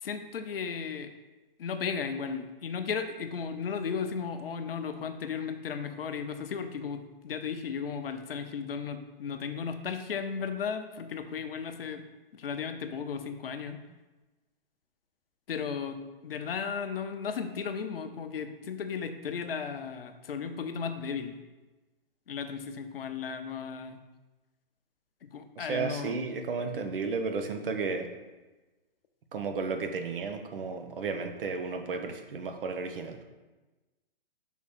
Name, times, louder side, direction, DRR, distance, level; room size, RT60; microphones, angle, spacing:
voice 1, 0.0-1.1 1.6-12.0 12.3-13.8 15.5-21.4 22.3-24.0 25.2-26.2 26.7-26.9, left 6 dB, 75° left, 7 dB, 0.7 m, -35 dB
voice 2, 25.6-28.1 29.3-33.2, right 4 dB, 65° right, 6 dB, 0.9 m, -33 dB
6.2 x 3.6 x 4.4 m, 1.2 s
hypercardioid pair, 135°, 29 cm